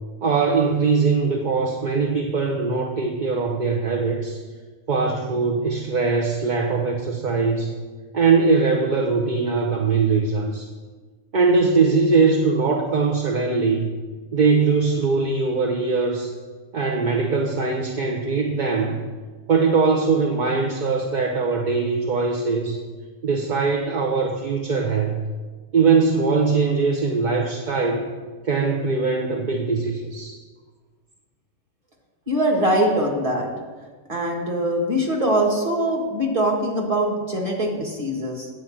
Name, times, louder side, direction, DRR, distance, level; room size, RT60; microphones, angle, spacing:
voice 1, 0.2-4.4 4.9-7.7 8.1-10.7 11.3-13.9 14.3-16.3 16.7-19.0 19.5-22.8 23.2-25.2 25.7-28.1 28.4-30.3, right 4 dB, 45° right, 1 dB, 0.7 m, -21 dB
voice 2, 32.3-33.5 34.1-38.5, right 1 dB, 25° right, 0 dB, 1.7 m, -22 dB
9.3 x 4.7 x 7.4 m, 1.4 s
omnidirectional pair, 1.3 m